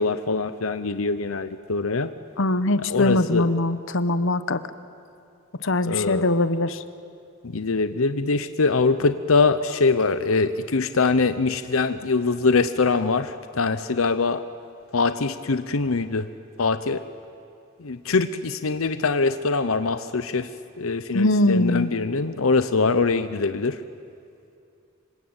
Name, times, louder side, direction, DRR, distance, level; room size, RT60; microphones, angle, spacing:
voice 1, 0.0-2.1 2.9-3.5 5.8-6.3 7.4-14.4 14.9-16.3 16.6-17.0 17.8-20.5 20.8-23.8, left 4 dB, 90° left, 11 dB, 0.8 m, -23 dB
voice 2, 2.4-4.6 5.6-6.8 21.1-21.9, left 2 dB, 65° left, 12 dB, 1.1 m, -22 dB
27.0 x 25.0 x 8.9 m, 2.6 s
head